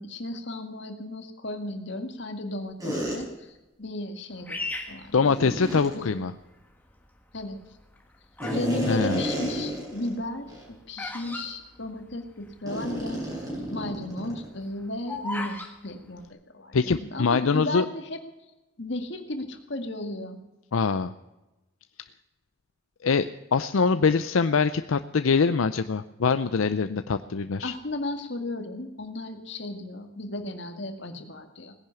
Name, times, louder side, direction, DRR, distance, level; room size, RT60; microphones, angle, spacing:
voice 1, 0.0-4.6 4.9-5.5 5.9-6.2 7.3-7.6 8.5-18.2 18.8-20.4 27.6-31.7, left 1 dB, 60° left, 6 dB, 1.9 m, -35 dB
sound 1, 2.8-3.2 5.2-5.9 8.4-10.1 10.5-10.6 11.2-11.4 12.7-14.5, right 1 dB, 20° right, 4.7 m, -31 dB
Bird vocalization bird call bird song, 4.5-6.0 6.6-7.1 7.8-8.7 9.0-12.5 12.8-12.9 13.0-13.4 13.8-15.7, left 2 dB, 10° left, 1.5 m, -37 dB
voice 2, 5.1-6.3 8.9-9.2 16.7-17.8 20.7-21.1 23.0-27.7, left 5 dB, 85° left, 11 dB, 0.5 m, -24 dB
18.0 x 10.5 x 6.9 m, 1.0 s
head